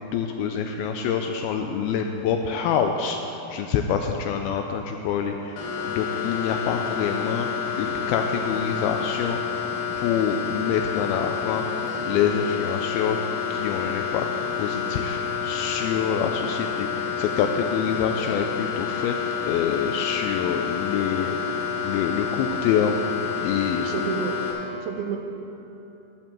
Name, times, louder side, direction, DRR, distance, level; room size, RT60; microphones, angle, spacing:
voice 1, 0.0-7.5 7.8-9.6 10.0-11.6 12.0-13.2 13.5-14.3 14.6-19.2 19.5-23.0 23.4-24.0, left 7 dB, 85° left, 4 dB, 2.2 m, -26 dB
sound 1, 5.6-24.5, left 7 dB, 55° left, 2.8 m, -29 dB
voice 2, 23.4-24.4 24.8-25.2, right 8 dB, 80° right, 3 dB, 2.4 m, -31 dB
13.0 x 5.3 x 7.3 m, 2.9 s
omnidirectional pair, 4.8 m